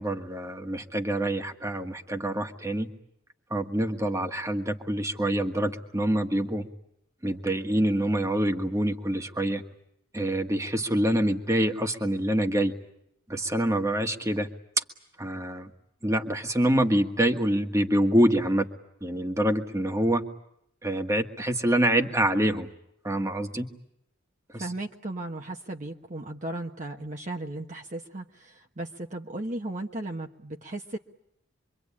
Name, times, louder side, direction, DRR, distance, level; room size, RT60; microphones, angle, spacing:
voice 1, 0.0-2.9 3.5-6.7 7.2-9.6 10.1-12.7 13.3-14.5 15.2-15.7 16.0-18.7 19.0-20.2 20.8-22.7 23.0-23.7 24.5-24.7, right 1 dB, 15° right, 5 dB, 1.6 m, -26 dB
voice 2, 24.5-31.0, right 2 dB, 40° right, 2 dB, 1.2 m, -36 dB
26.0 x 24.0 x 8.6 m, 0.76 s
head